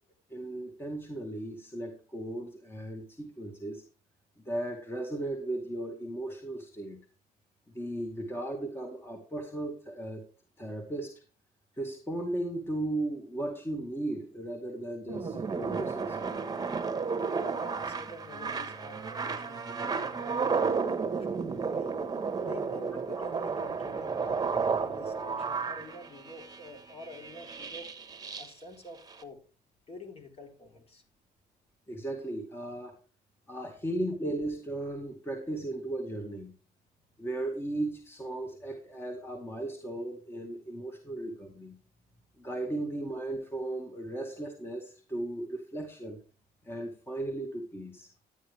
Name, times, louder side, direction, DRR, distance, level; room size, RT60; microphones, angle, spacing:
voice 1, 0.3-3.8 4.5-7.0 7.7-10.3 10.6-11.2 11.8-16.4 31.9-33.0 33.5-36.5 37.2-41.8 42.4-46.2 46.6-48.1, right 1 dB, 15° left, 3 dB, 2.1 m, -36 dB
sound 1, 15.1-28.5 29.1-29.2, right 5 dB, 20° right, 1.4 m, -33 dB
voice 2, 17.3-21.9 22.4-27.9 28.4-29.4 29.9-31.0, left 2 dB, 35° left, 3 dB, 3.8 m, -48 dB
12.0 x 9.4 x 3.5 m, 0.33 s
cardioid pair, 110°, 17 cm